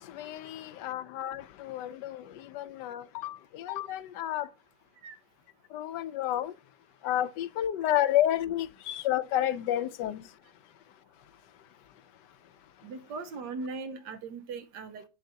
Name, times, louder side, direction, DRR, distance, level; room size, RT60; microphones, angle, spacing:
voice 1, 0.1-2.2 2.5-4.5 5.7-6.5 7.0-10.2, left 12 dB, 80° left, 1.2 m, -30 dB
voice 2, 12.8-15.0, right 4 dB, 80° right, 1.5 m, -39 dB
7.3 x 7.0 x 2.7 m
omnidirectional pair, 1.8 m